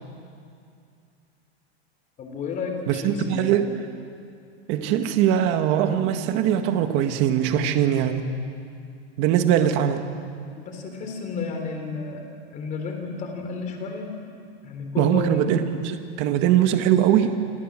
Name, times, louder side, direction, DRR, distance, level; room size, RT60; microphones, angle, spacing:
voice 1, 2.2-3.5 9.5-9.7 10.6-12.2 12.5-14.1 14.6-15.5, left 4 dB, 25° left, 4 dB, 4.0 m, -32 dB
voice 2, 2.9-3.7 4.7-8.2 9.2-10.0 15.0-17.4, right 10 dB, 35° right, 7 dB, 1.8 m, -21 dB
28.0 x 27.0 x 7.7 m, 2.4 s
supercardioid pair, 165°, 32 cm